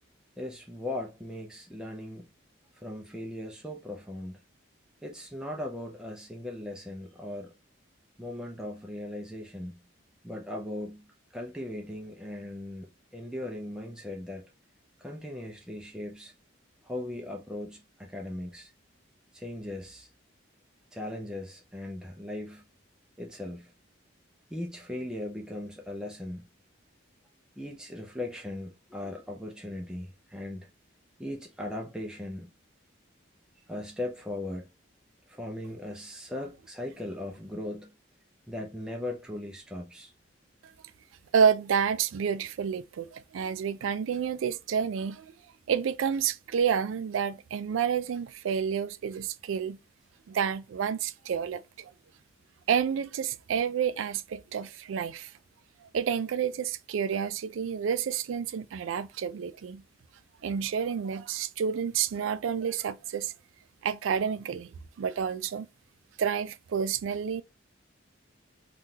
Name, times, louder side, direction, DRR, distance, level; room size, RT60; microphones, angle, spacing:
voice 1, 0.4-2.3 2.8-4.4 5.0-7.5 8.2-9.8 10.2-14.5 15.0-16.3 16.8-18.7 19.3-20.1 20.9-22.7 23.2-23.7 24.5-26.5 27.6-30.7 31.2-32.5 33.7-34.7 35.3-37.9 38.5-40.1, left 1 dB, 5° right, 0.4 m, -38 dB
voice 2, 41.3-45.3 45.7-49.8 50.3-51.9 52.7-55.3 55.9-59.8 60.4-63.3 63.8-64.7 65.0-65.7 66.2-67.4, right 7 dB, 75° right, 0.3 m, -29 dB
3.6 x 2.4 x 2.7 m
head